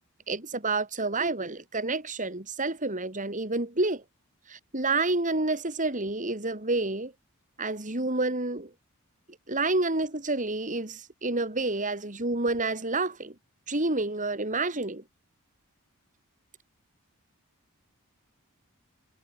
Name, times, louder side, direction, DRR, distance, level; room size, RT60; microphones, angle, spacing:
voice 1, 0.3-4.0 4.5-7.1 7.6-8.7 9.5-13.3 13.7-15.0, right 2 dB, 35° right, 4.0 m, -29 dB
head